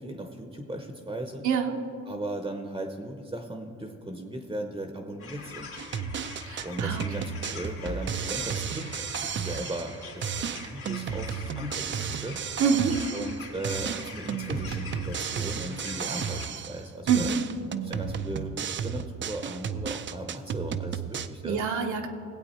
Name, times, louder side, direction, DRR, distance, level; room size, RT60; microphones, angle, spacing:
voice 1, 0.0-1.5 2.1-5.8 6.6-12.4 13.1-17.3 17.8-21.6, right 1 dB, 15° right, 5 dB, 0.9 m, -37 dB
sound 1, 5.2-16.5, left 4 dB, 50° left, 2.9 m, -44 dB
sound 2, 5.8-10.0 10.2-13.4 13.6-16.8 17.1-21.3, right 7 dB, 40° right, 0.5 m, -33 dB
voice 2, 6.4-7.0 12.6-13.0 17.1-17.4 21.4-22.1, right 7 dB, 70° right, 2 dB, 1.0 m, -26 dB
18.5 x 8.0 x 4.3 m, 2.7 s
cardioid pair, 90°, 30 cm